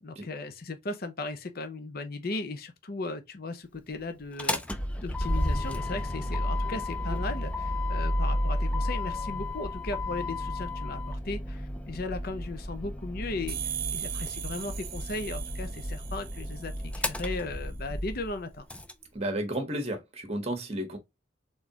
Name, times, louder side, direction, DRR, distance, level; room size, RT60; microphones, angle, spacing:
voice 1, 0.0-18.6, left 2 dB, 50° left, 0.7 m, -37 dB
Motor vehicle (road), 4.2-18.9, left 1 dB, 5° left, 0.4 m, -32 dB
sound 1, 13.5-17.1, right 11 dB, 50° right, 0.9 m, -38 dB
voice 2, 19.1-21.0, right 1 dB, 30° right, 1.4 m, -32 dB
4.1 x 3.8 x 2.9 m
head